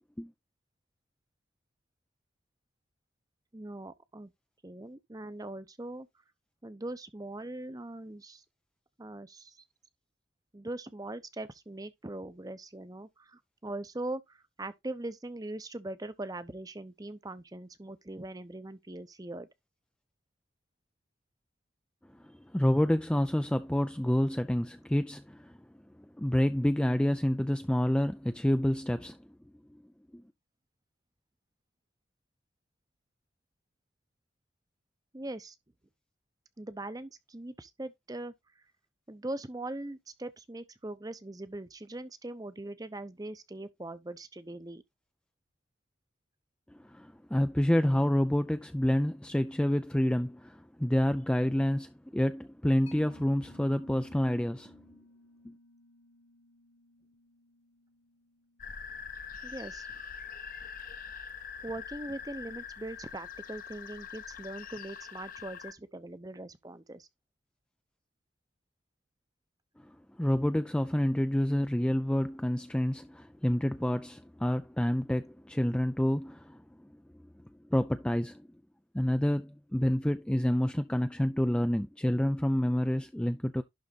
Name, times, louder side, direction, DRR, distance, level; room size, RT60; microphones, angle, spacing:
voice 1, 3.5-4.3 4.6-6.1 6.6-8.4 9.0-9.6 10.5-19.5 35.1-35.6 36.6-38.6 39.1-44.8 59.4-59.9 61.6-67.1, right 2 dB, 20° right, 0.7 m, -41 dB
voice 2, 22.5-25.6 26.2-29.2 30.1-30.2 46.7-54.8 55.4-55.5 69.8-69.9 70.2-76.6 77.7-78.5 78.9-83.6, equal, 5° left, 0.4 m, -28 dB
Mallet percussion, 52.9-59.9, left 2 dB, 75° left, 2.5 m, -60 dB
sound 1, 58.6-65.7, left 6 dB, 45° left, 0.9 m, -44 dB
11.5 x 4.0 x 4.0 m
head